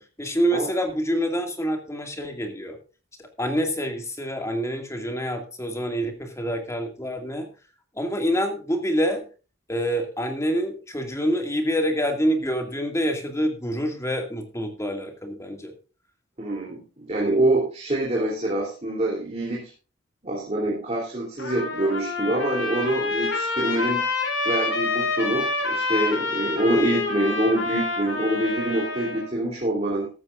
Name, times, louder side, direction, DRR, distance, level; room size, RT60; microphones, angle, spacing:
voice 1, 0.0-2.8 3.2-7.5 7.9-9.2 9.7-15.7, equal, 15° left, 4 dB, 2.2 m, -26 dB
voice 2, 16.4-19.7 20.2-24.1 24.4-30.1, right 1 dB, 35° right, -3 dB, 3.2 m, -25 dB
Trumpet, 21.4-29.3, left 3 dB, 70° left, 5.0 m, -27 dB
15.0 x 12.5 x 2.5 m, 0.34 s
head